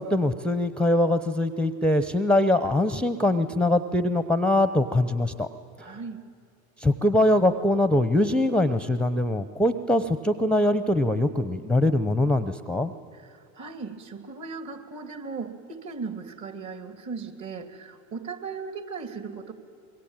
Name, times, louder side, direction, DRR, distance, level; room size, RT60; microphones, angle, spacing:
voice 1, 0.0-5.5 5.8-5.9 6.8-12.9, left 1 dB, 5° left, 12 dB, 0.8 m, -23 dB
voice 2, 5.8-6.2 13.2-19.5, right 5 dB, 40° right, 9 dB, 2.9 m, -37 dB
25.5 x 22.0 x 9.0 m, 2.3 s
hypercardioid pair, 90°, 42 cm